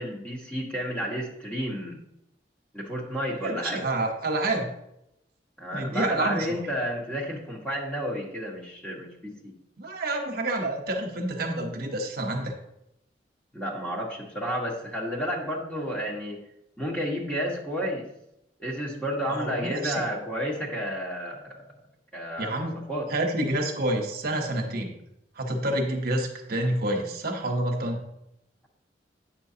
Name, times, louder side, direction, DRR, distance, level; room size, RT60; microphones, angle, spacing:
voice 1, 0.0-2.0 2.7-3.8 5.6-9.5 13.5-16.4 16.8-18.1 18.6-21.6 22.1-23.1, equal, 10° left, -3 dB, 1.4 m, -31 dB
voice 2, 3.4-4.7 5.7-6.5 9.8-12.5 19.3-20.0 22.4-22.8 23.1-25.0 25.4-28.1, right 1 dB, 60° right, 1 dB, 1.1 m, -28 dB
8.7 x 6.1 x 2.8 m, 0.82 s
head